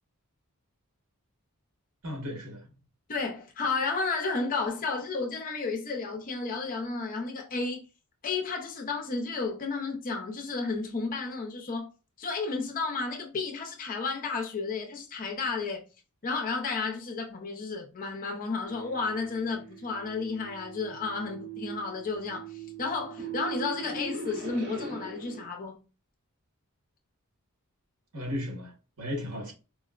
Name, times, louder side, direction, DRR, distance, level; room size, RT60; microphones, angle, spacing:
voice 1, 2.0-2.7 28.1-29.5, left 1 dB, 70° right, 1.2 m, -35 dB
voice 2, 3.1-7.9 8.2-11.9 12.2-15.9 16.2-25.8, left 4 dB, 40° left, 0.5 m, -32 dB
sound 1, 18.6-25.5, right 4 dB, 50° right, 0.9 m, -41 dB
4.2 x 2.0 x 2.3 m
head